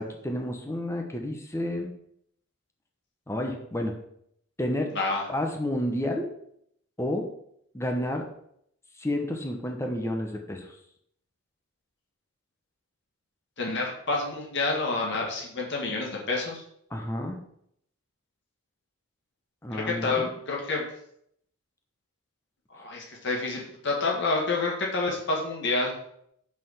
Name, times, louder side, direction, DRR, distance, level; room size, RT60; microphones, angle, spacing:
voice 1, 0.0-1.9 3.3-4.0 4.6-4.9 5.3-6.3 7.0-7.3 7.7-8.3 9.0-10.7 16.9-17.4 19.6-20.3, left 1 dB, 15° left, 2 dB, 1.0 m, -30 dB
voice 2, 4.9-5.2 13.6-16.6 19.7-20.8 22.7-25.9, left 3 dB, 55° left, -2 dB, 1.8 m, -28 dB
5.8 x 5.1 x 6.5 m, 0.71 s
head